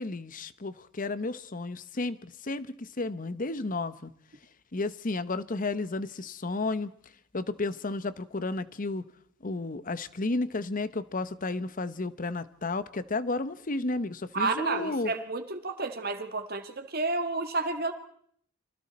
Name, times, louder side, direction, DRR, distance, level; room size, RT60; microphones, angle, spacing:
voice 1, 0.0-4.1 4.7-6.9 7.3-9.0 9.4-15.1, left 3 dB, 45° left, 0.9 m, -32 dB
voice 2, 14.3-17.9, right 3 dB, 50° right, 1.9 m, -31 dB
30.0 x 24.0 x 4.3 m
head